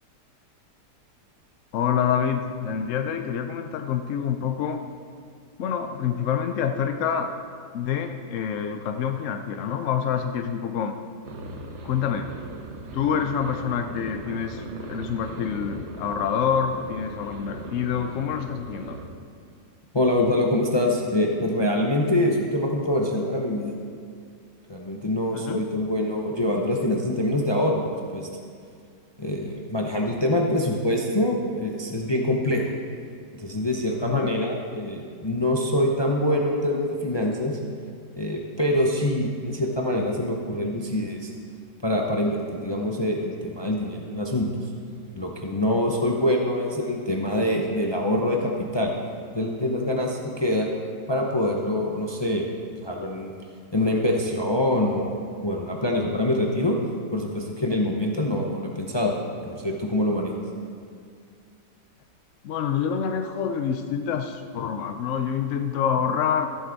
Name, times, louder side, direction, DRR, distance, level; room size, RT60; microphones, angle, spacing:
voice 1, 1.7-4.8 5.6-7.3 7.7-10.9 11.8-12.3 12.9-19.0 25.3-25.6 34.0-34.3 62.4-66.5, left 7 dB, 70° left, 6 dB, 0.7 m, -27 dB
sound 1, 11.2-19.1, right 3 dB, 70° right, 1.5 m, -39 dB
voice 2, 19.9-23.7 24.7-27.8 28.1-28.3 29.2-32.6 33.4-37.6 38.2-41.3 41.8-44.5 45.2-48.9 49.3-50.7 51.1-53.3 53.7-56.8 57.1-59.2 59.4-60.3, left 1 dB, 40° left, 0 dB, 0.3 m, -25 dB
14.5 x 7.7 x 4.0 m, 2.2 s
omnidirectional pair, 1.8 m